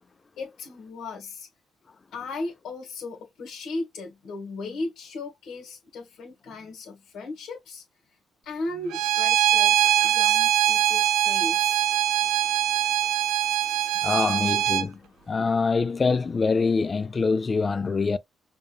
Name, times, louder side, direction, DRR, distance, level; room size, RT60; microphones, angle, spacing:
voice 1, 0.4-1.5 2.1-7.8 8.4-11.9, left 2 dB, 70° left, 1.5 m, -36 dB
Bowed string instrument, 8.9-14.9, right 12 dB, 90° right, 0.5 m, -22 dB
voice 2, 14.0-15.0 15.3-18.2, left 4 dB, 35° left, 0.4 m, -24 dB
5.2 x 2.6 x 2.3 m
cardioid pair, 90°, 0 cm